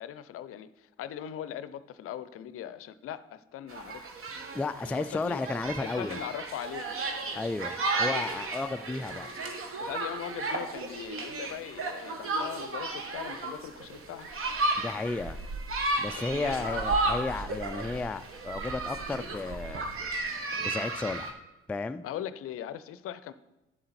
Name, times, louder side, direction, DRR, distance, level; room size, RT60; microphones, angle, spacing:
voice 1, 0.0-4.1 4.8-5.4 5.8-7.0 7.9-8.1 9.8-14.3 16.3-16.9 22.0-23.3, left 10 dB, 50° left, 14 dB, 0.6 m, -40 dB
sound 1, 3.7-21.3, right 2 dB, 45° right, 1.4 m, -34 dB
voice 2, 4.5-6.2 7.4-9.3 14.8-15.4 16.0-19.8 20.6-21.4 21.7-22.0, left 3 dB, 5° left, 9 dB, 0.3 m, -33 dB
10.5 x 7.5 x 4.3 m, 1.0 s
figure-of-eight pair, 50°, 29 cm